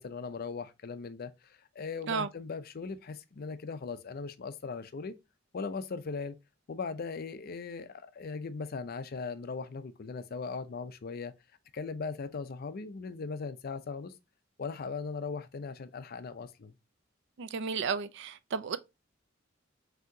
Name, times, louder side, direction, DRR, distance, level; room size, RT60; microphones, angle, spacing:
voice 1, 0.0-5.2 5.5-6.4 6.7-11.3 11.7-14.1 14.6-16.7, left 4 dB, 50° left, 0.5 m, -39 dB
voice 2, 17.4-18.8, right 5 dB, 65° right, 0.4 m, -33 dB
6.0 x 2.8 x 2.6 m
head